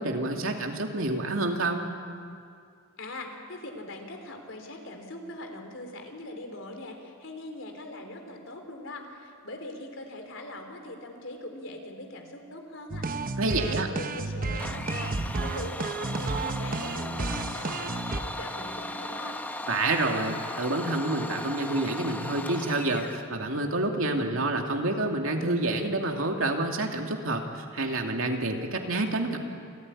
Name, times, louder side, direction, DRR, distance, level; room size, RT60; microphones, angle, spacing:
voice 1, 0.0-1.9 13.4-13.9 19.7-29.4, right 2 dB, 90° right, 2 dB, 2.6 m, -28 dB
voice 2, 3.0-15.1 15.4-19.4, left 1 dB, 70° left, 4 dB, 3.6 m, -41 dB
sound 1, 12.9-18.2, right 3 dB, 45° right, 1.0 m, -32 dB
Domestic sounds home sounds, 14.6-23.3, left 1 dB, 10° left, 1.0 m, -37 dB
28.0 x 14.0 x 9.9 m, 2.4 s
head